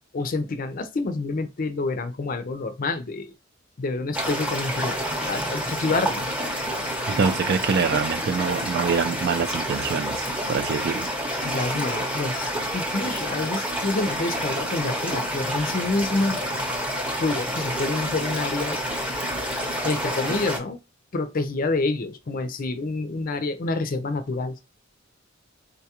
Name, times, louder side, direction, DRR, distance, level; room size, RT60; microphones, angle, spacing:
voice 1, 0.1-3.3 3.8-5.0 5.3-6.3 11.4-16.4 17.2-18.8 19.8-20.8 21.1-24.6, left 3 dB, 45° left, 0.5 m, -27 dB
sound 1, 4.1-20.6, equal, 5° right, 0.7 m, -28 dB
voice 2, 7.1-10.2 10.5-11.1, right 5 dB, 55° right, 0.3 m, -25 dB
3.8 x 2.3 x 2.8 m
head